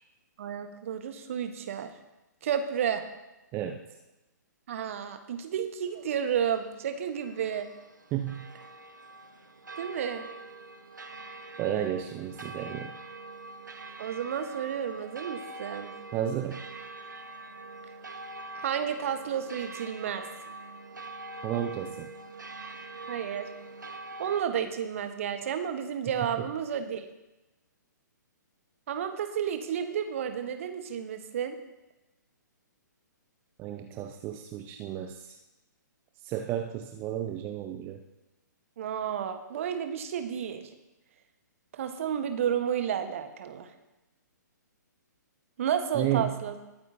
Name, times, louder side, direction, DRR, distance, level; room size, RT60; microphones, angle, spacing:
voice 1, 0.4-1.9 2.4-3.0 4.7-7.7 9.8-10.3 14.0-15.9 18.5-20.2 23.1-23.5 24.2-27.1 28.9-31.6 38.8-40.6 41.7-43.7 45.6-46.6, right 8 dB, 45° right, 8 dB, 1.2 m, -31 dB
sound 1, 5.8-24.4, right 2 dB, 75° right, 1.1 m, -44 dB
voice 2, 8.1-8.5 11.6-12.9 16.1-16.6 21.4-22.1 33.6-35.4 36.2-38.0 45.9-46.3, right 11 dB, 20° right, 6 dB, 0.6 m, -32 dB
20.5 x 8.6 x 2.7 m, 1.0 s
figure-of-eight pair, 125°, 10 cm